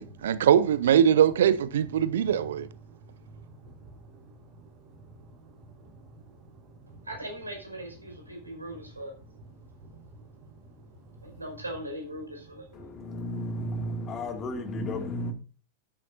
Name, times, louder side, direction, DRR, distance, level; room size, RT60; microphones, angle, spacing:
voice 1, 0.0-2.7, right 9 dB, 60° right, 0.7 m, -22 dB
voice 2, 2.9-6.5 6.9-7.0 9.9-10.4 11.2-11.4, right 2 dB, 45° right, 4.2 m, -51 dB
voice 3, 7.0-9.1 11.2-12.9, right 1 dB, 80° right, 5.4 m, -39 dB
voice 4, 12.7-15.3, left 1 dB, 30° left, 2.3 m, -33 dB
13.5 x 11.0 x 2.7 m
figure-of-eight pair, 90°, 0 cm